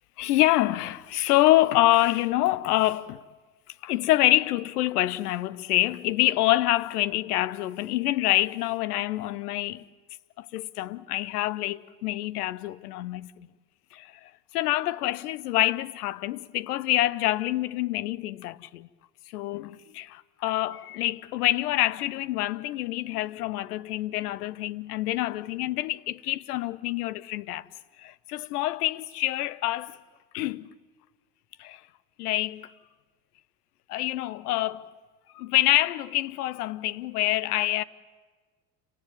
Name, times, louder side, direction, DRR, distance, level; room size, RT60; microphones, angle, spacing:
voice 1, 0.2-3.2 3.8-9.8 10.4-13.5 13.9-18.9 19.3-27.7 28.0-30.0 30.3-30.7 31.6-31.8 32.2-32.7 33.9-34.9 35.3-37.8, left 16 dB, 70° left, 0.9 m, -26 dB
29.5 x 18.5 x 9.2 m
figure-of-eight pair, 60°, 48 cm